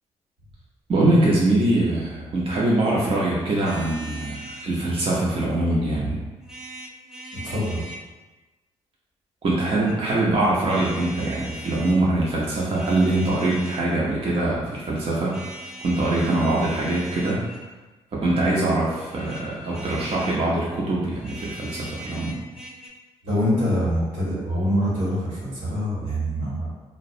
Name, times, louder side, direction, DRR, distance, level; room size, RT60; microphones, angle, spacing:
voice 1, 0.9-6.2 9.4-15.4 15.8-17.4 18.1-22.4, right 2 dB, 45° right, -5 dB, 0.6 m, -23 dB
sound 1, 3.6-4.7 6.4-8.0 9.6-10.0 10.6-12.0 12.6-14.0 15.3-17.7 19.1-20.5 21.1-22.9, right 1 dB, 5° right, 0.5 m, -40 dB
voice 2, 7.3-7.9 23.2-26.7, equal, 85° right, -8 dB, 1.0 m, -25 dB
2.3 x 2.0 x 2.6 m, 1.2 s
supercardioid pair, 60°, 13 cm